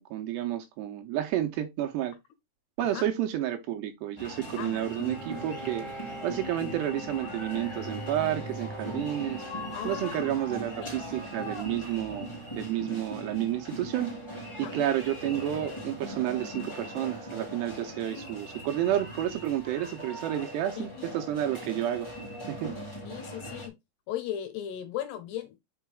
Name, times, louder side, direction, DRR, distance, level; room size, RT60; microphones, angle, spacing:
voice 1, 0.0-2.2 2.8-5.9 6.2-9.4 9.8-12.3 12.6-14.1 14.6-22.1 22.5-22.7, right 12 dB, 80° right, 2.7 m, -30 dB
sound 1, 4.2-23.7, equal, 30° left, 0.5 m, -40 dB
voice 2, 4.6-5.1 9.7-10.3 10.8-10.9 14.5-14.9 18.1-18.3 20.8-21.1 23.1-23.8 24.1-25.6, left 10 dB, 75° left, 2.7 m, -37 dB
Bowed string instrument, 5.1-10.7, equal, 10° left, 2.5 m, -44 dB
6.0 x 5.6 x 3.4 m
omnidirectional pair, 5.4 m